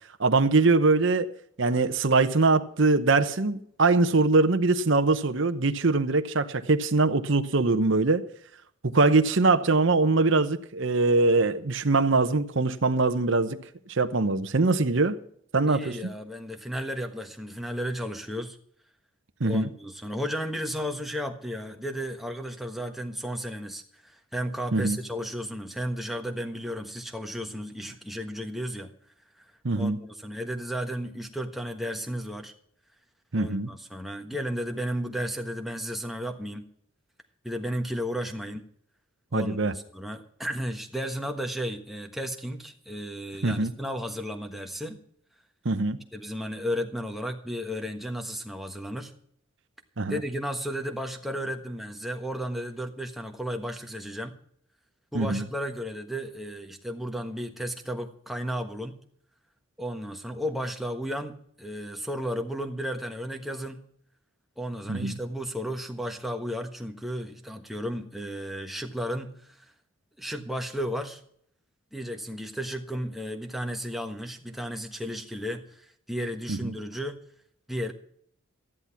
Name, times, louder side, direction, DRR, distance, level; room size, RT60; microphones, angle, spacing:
voice 1, 0.2-1.3 1.6-8.2 8.8-13.6 13.9-15.2 15.5-16.0 19.4-19.7 24.7-25.0 29.6-30.0 33.3-33.7 39.3-39.7 43.4-43.7 45.6-46.0 50.0-50.2 55.1-55.4 64.9-65.2 76.5-76.7, right 3 dB, 55° right, 0.9 m, -23 dB
voice 2, 15.7-18.6 19.4-28.9 29.4-32.5 33.3-36.7 37.4-38.6 39.3-45.0 46.1-49.1 50.1-54.4 55.1-59.0 59.8-63.8 64.6-69.6 70.2-71.2 71.9-77.2 77.7-77.9, equal, ahead, 1.2 m, -34 dB
13.5 x 10.5 x 5.8 m
head